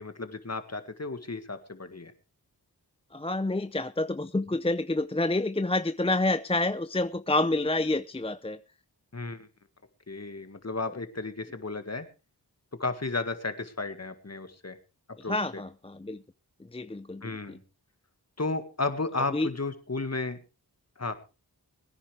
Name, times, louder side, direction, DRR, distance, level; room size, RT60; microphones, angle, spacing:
voice 1, 0.0-2.1 9.1-9.5 10.1-12.0 12.8-14.8 15.2-15.6 17.2-17.6 18.4-20.4 21.0-21.1, left 3 dB, 40° left, 9 dB, 1.8 m, -33 dB
voice 2, 3.1-8.6 15.2-16.2 16.7-17.6 19.3-19.5, left 2 dB, 15° left, 12 dB, 0.6 m, -28 dB
22.5 x 10.0 x 3.3 m, 0.31 s
cardioid pair, 45°, 39 cm